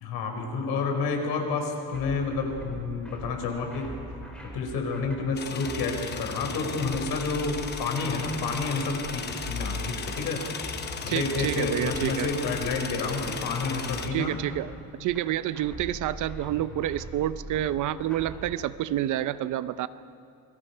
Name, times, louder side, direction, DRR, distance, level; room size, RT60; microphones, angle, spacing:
voice 1, 0.0-3.9 4.5-10.4 11.0-14.4, left 4 dB, 70° left, 3 dB, 4.2 m, -29 dB
sound 1, 1.9-18.5, equal, 5° left, 3.5 m, -41 dB
sound 2, 5.4-14.1, left 6 dB, 25° left, 1.0 m, -37 dB
voice 2, 11.1-12.3 14.1-14.7 15.0-19.9, right 13 dB, 50° right, 15 dB, 0.6 m, -28 dB
28.5 x 21.5 x 5.5 m, 2.5 s
cardioid pair, 175°, 38 cm